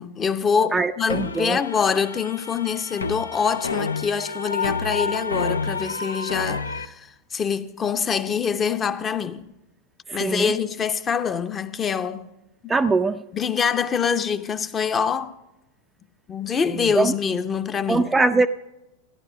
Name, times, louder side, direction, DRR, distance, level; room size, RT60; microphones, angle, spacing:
voice 1, 0.0-9.5 10.1-12.3 12.6-12.7 13.3-15.4 16.3-18.1, left 6 dB, 20° left, 0.7 m, -25 dB
voice 2, 0.7-1.6 10.1-10.5 12.7-13.2 16.7-17.1 17.9-18.5, right 3 dB, 15° right, 0.4 m, -22 dB
sound 1, 1.1-6.9, left 4 dB, 75° left, 0.5 m, -29 dB
15.0 x 10.5 x 5.0 m
figure-of-eight pair, 90°, 0 cm